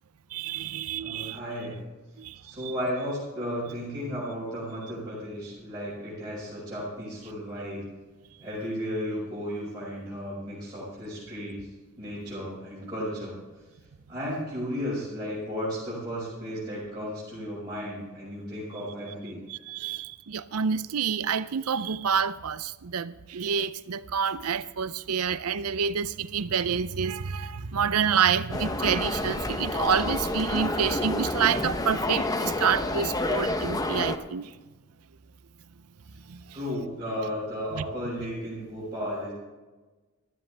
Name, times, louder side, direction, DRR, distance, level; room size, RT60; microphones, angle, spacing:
voice 1, 0.3-1.4 2.2-2.4 2.6-2.7 19.5-34.5 36.3-36.4 37.8-37.9, right 7 dB, 80° right, 0.6 m, -28 dB
voice 2, 1.0-1.8 2.4-7.8 8.4-11.6 12.0-13.4 14.1-19.4 36.5-39.3, equal, 20° right, 5.2 m, -34 dB
sound 1, 28.5-34.2, left 2 dB, 15° left, 0.8 m, -29 dB
15.0 x 13.0 x 3.4 m
head